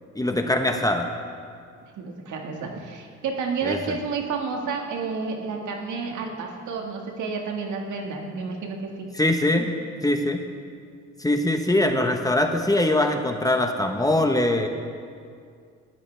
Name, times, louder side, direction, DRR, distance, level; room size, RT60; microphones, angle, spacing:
voice 1, 0.1-1.1 3.6-3.9 9.1-9.8 10.0-10.4 11.2-14.7, left 1 dB, 10° left, 5 dB, 1.0 m, -22 dB
voice 2, 2.0-9.1, right 4 dB, 75° right, 2 dB, 1.8 m, -30 dB
19.0 x 13.0 x 3.4 m, 2.2 s
cardioid pair, 90°, 30 cm